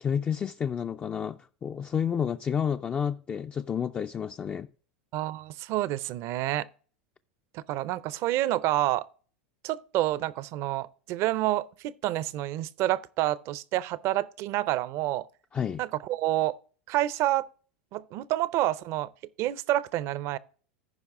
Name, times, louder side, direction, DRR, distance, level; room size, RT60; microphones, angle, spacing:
voice 1, 0.0-4.7 15.5-15.8, left 7 dB, 20° left, 0.3 m, -30 dB
voice 2, 5.1-6.7 7.5-9.1 9.6-15.3 15.8-16.6 16.9-17.5 17.9-19.1 19.4-20.4, right 15 dB, 50° right, 0.5 m, -28 dB
14.5 x 5.2 x 3.6 m
hypercardioid pair, 110°, 6 cm